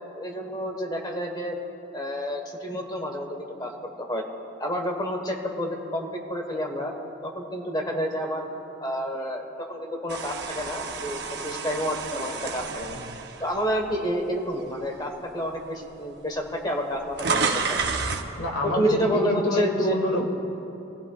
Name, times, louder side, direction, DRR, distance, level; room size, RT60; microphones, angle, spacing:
voice 1, 0.1-1.6 1.9-3.7 4.0-4.2 4.6-6.9 7.2-8.5 8.8-13.0 13.4-17.9 18.6-20.0, equal, 20° left, 2 dB, 1.3 m, -29 dB
sound 1, 10.1-14.3 14.8-15.0 15.9-16.0 16.2-18.3, right 4 dB, 55° right, 0.8 m, -30 dB
voice 2, 18.4-20.2, left 1 dB, 75° left, 1 dB, 1.8 m, -25 dB
23.0 x 15.0 x 2.4 m, 2.9 s
head